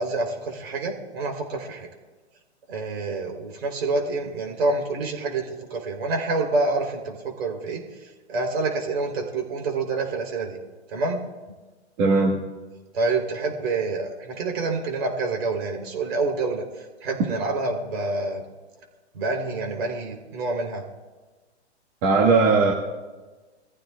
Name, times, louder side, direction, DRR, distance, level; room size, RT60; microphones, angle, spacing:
voice 1, 0.0-1.9 2.7-10.6 10.9-11.2 12.9-18.4 19.1-20.8, right 3 dB, 55° right, 2 dB, 4.1 m, -27 dB
voice 2, 12.0-12.4 22.0-22.7, right 3 dB, 35° right, -4 dB, 1.9 m, -18 dB
23.0 x 14.5 x 2.5 m, 1.3 s
hypercardioid pair, 135°, 35 cm